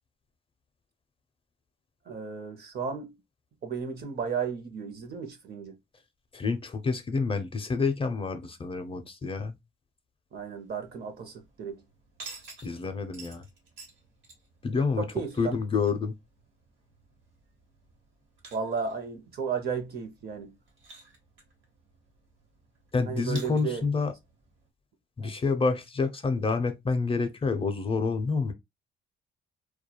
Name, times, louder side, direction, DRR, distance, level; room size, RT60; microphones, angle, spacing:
voice 1, 2.1-3.1 3.6-5.8 10.3-11.8 15.0-15.6 18.5-20.6 23.1-23.8 25.2-25.3, right 6 dB, 55° right, 0.7 m, -34 dB
voice 2, 6.3-9.6 12.6-13.4 14.6-15.0 15.4-16.1 22.9-24.1 25.2-28.5, left 4 dB, 30° left, 0.5 m, -28 dB
sound 1, 10.3-24.7, right 3 dB, 70° right, 1.2 m, -53 dB
2.3 x 2.2 x 2.9 m
cardioid pair, 90°, 20 cm